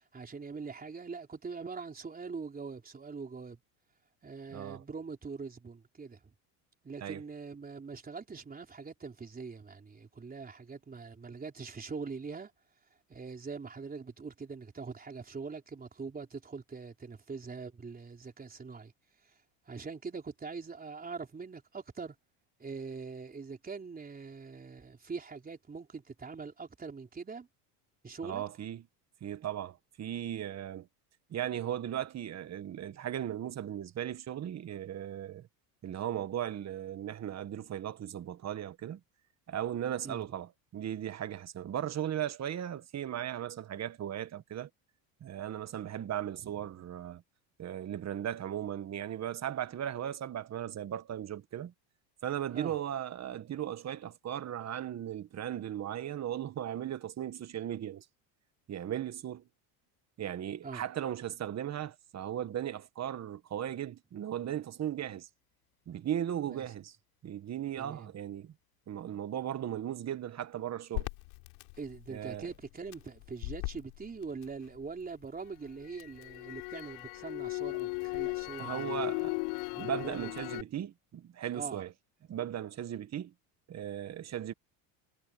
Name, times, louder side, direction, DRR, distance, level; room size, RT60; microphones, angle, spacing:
voice 1, 0.0-3.6 4.2-6.2 6.8-12.5 13.1-18.9 19.7-22.2 22.6-27.5 28.0-28.4 40.0-40.2 52.5-52.7 60.6-60.8 66.5-66.6 67.8-68.1 71.8-79.1 79.7-80.6 81.5-81.8, right 4 dB, 20° right, 3.9 m, -43 dB
voice 2, 4.5-4.8 7.0-7.2 28.2-28.8 29.2-30.9 31.3-35.5 35.8-39.0 39.5-44.7 45.2-47.2 47.6-51.7 52.2-58.0 58.7-59.4 60.2-65.3 65.9-66.9 67.2-68.5 68.9-71.1 72.1-72.5 78.6-79.4 79.8-81.9 82.3-83.3 83.7-84.5, right 10 dB, 35° right, 1.6 m, -37 dB
Crackle, 70.9-75.1 75.5-80.6, left 33 dB, 80° left, 5.0 m, -37 dB
supercardioid pair, 115°, 45 cm